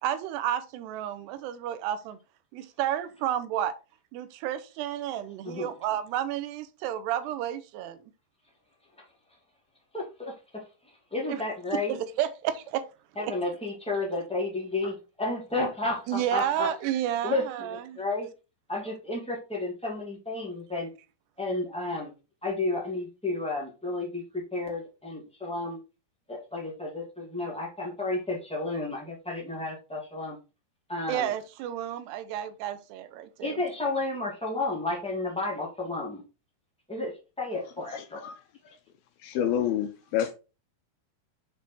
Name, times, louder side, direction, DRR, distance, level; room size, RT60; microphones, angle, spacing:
voice 1, 0.0-2.2 2.5-3.8 4.1-8.0 11.3-11.4 11.7-12.9 13.2-13.3 16.1-18.0 31.1-33.6, right 11 dB, 90° right, 2.7 m, -31 dB
voice 2, 9.9-12.0 13.1-16.7 17.2-18.3 18.7-20.9 21.4-22.1 22.4-25.8 26.3-30.4 30.9-31.3 33.4-36.2 36.9-38.2, left 2 dB, 5° left, 0.6 m, -32 dB
voice 3, 37.9-38.4 38.7-38.8 39.2-40.3, left 10 dB, 80° left, 2.4 m, -29 dB
7.0 x 4.5 x 4.4 m
omnidirectional pair, 4.8 m